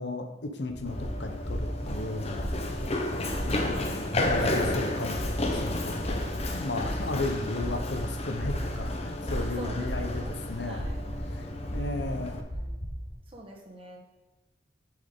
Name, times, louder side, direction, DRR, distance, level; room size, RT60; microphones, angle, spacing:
voice 1, 0.0-2.6 3.4-6.3 6.5-10.9 11.3-12.4, left 2 dB, 60° left, 5 dB, 0.9 m, -35 dB
sound 1, 0.7-13.2, equal, 85° left, 2.5 m, -36 dB
Run, 0.9-12.4, left 2 dB, 30° left, 0.7 m, -33 dB
voice 2, 9.3-10.4 10.6-11.0 12.1-12.3 12.5-12.8 13.3-14.0, right 1 dB, 30° right, 0 dB, 1.2 m, -45 dB
8.3 x 6.4 x 3.6 m, 1.2 s
head